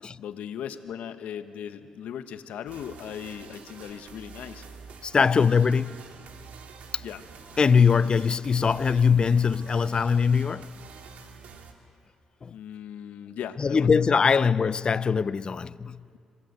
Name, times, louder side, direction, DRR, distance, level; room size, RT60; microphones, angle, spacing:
voice 1, 0.2-4.7 7.0-7.2 12.5-14.0, left 9 dB, 80° left, 1.2 m, -38 dB
sound 1, 2.7-11.7, right 5 dB, 70° right, 2.4 m, -47 dB
voice 2, 5.0-6.1 7.6-10.8 12.4-12.5 13.6-16.0, left 6 dB, 35° left, 0.5 m, -22 dB
26.0 x 18.0 x 8.1 m
cardioid pair, 85°, 2 cm